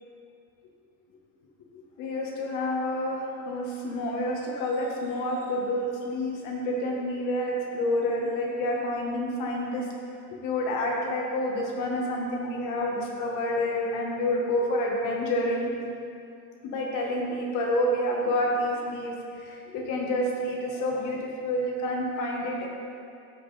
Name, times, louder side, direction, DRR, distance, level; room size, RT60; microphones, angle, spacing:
voice 1, 2.0-9.9 10.3-15.7 16.6-22.7, left 1 dB, 85° left, -1 dB, 1.8 m, -28 dB
15.0 x 5.2 x 4.3 m, 2.5 s
cardioid pair, 170°, 31 cm